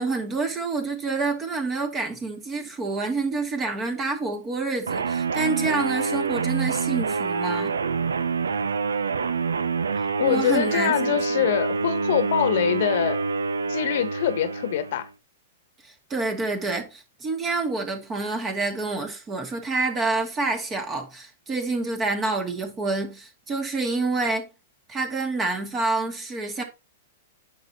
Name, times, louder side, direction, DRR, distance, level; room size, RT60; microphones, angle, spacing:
voice 1, 0.0-7.8 10.2-11.5 15.8-24.5 24.9-26.6, right 3 dB, 25° right, 2.1 m, -28 dB
sound 1, 4.9-15.1, right 4 dB, 85° right, 0.5 m, -26 dB
voice 2, 10.2-13.2 13.7-15.1, left 10 dB, 65° left, 1.1 m, -24 dB
9.5 x 6.1 x 2.9 m
hypercardioid pair, 110°, 0 cm